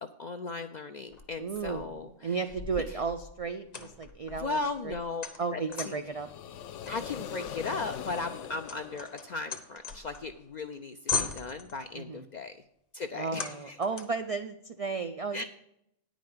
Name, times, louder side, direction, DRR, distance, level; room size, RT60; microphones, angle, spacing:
voice 1, 0.0-2.4 2.9-3.0 4.3-6.0 6.8-12.6 12.9-13.8 15.3-15.4, left 3 dB, 60° left, 7 dB, 0.4 m, -37 dB
sound 1, 1.1-2.0 2.5-6.2 6.9-10.4 10.7-10.8 11.1-11.9 13.3-14.3, left 5 dB, 35° left, 0.9 m, -38 dB
voice 2, 1.4-4.6 4.8-5.0 5.4-6.3 11.9-12.2 13.1-15.4, right 5 dB, 70° right, 7 dB, 0.3 m, -34 dB
sound 2, 5.9-9.9, left 9 dB, 75° left, 0.9 m, -42 dB
9.6 x 5.1 x 7.6 m, 0.77 s
omnidirectional pair, 1.3 m